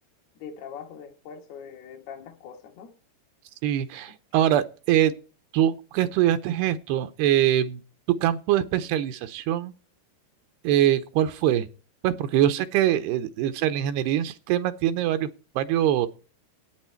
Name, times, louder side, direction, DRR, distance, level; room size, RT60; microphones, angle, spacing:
voice 1, 0.4-2.9 12.9-13.1, left 7 dB, 70° left, 3.2 m, -42 dB
voice 2, 3.6-5.1 5.5-7.8 8.2-9.7 10.6-11.7 12.0-15.3 15.6-16.1, right 11 dB, 80° right, 2.6 m, -23 dB
12.0 x 9.0 x 4.5 m
omnidirectional pair, 4.9 m